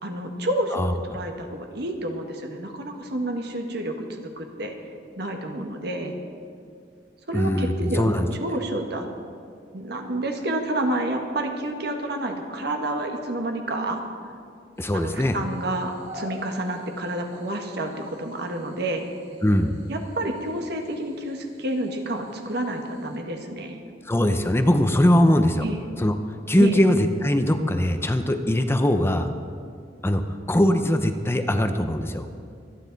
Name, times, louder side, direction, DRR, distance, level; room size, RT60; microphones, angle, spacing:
voice 1, 0.0-0.8 1.1-4.7 5.2-6.2 7.3-8.1 8.4-9.1 9.7-14.0 14.9-19.0 19.9-23.8 25.6-25.8 26.6-26.8, right 1 dB, 65° right, 4 dB, 1.5 m, -29 dB
voice 2, 7.3-8.3 14.8-15.4 19.4-19.8 24.1-25.7 26.0-26.2 26.5-29.3 30.0-30.2 30.5-32.3, left 1 dB, 15° left, 7 dB, 0.7 m, -21 dB
sound 1, 14.7-23.2, equal, 40° right, 4.6 m, -48 dB
25.0 x 9.6 x 4.0 m, 2.3 s
head